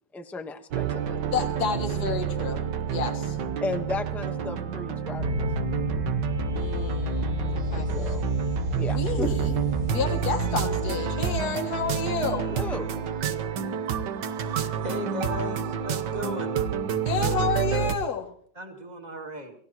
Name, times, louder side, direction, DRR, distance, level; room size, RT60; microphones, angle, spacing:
voice 1, 0.1-1.2 3.6-5.5 7.7-8.2 8.7-9.3 12.5-12.9, left 3 dB, ahead, 5 dB, 0.8 m, -34 dB
sound 1, 0.7-17.9, right 8 dB, 85° right, 1.7 m, -29 dB
voice 2, 1.3-3.4 6.5-7.9 8.9-9.6 9.9-12.5 17.1-18.3, left 5 dB, 65° left, 3 dB, 2.0 m, -30 dB
Bass guitar, 5.2-11.4, left 4 dB, 55° right, 8.5 m, -32 dB
voice 3, 14.8-16.6 18.5-19.5, left 2 dB, 25° right, 3 dB, 2.4 m, -36 dB
29.0 x 16.0 x 3.0 m, 0.62 s
omnidirectional pair, 1.8 m